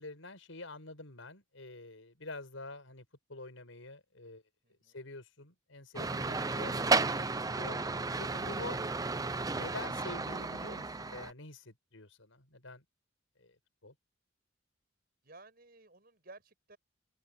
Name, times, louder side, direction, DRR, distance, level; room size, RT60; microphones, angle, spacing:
voice 1, 0.0-3.0 3.3-4.4 4.9-7.8 8.2-8.8 9.5-12.8 13.4-13.6 13.8-13.9, left 2 dB, 85° left, 5.7 m, -47 dB
voice 2, 4.6-5.0 15.2-16.8, right 2 dB, 50° right, 6.3 m, -56 dB
sound 1, 6.0-11.3, right 3 dB, 20° right, 0.6 m, -33 dB
open air
head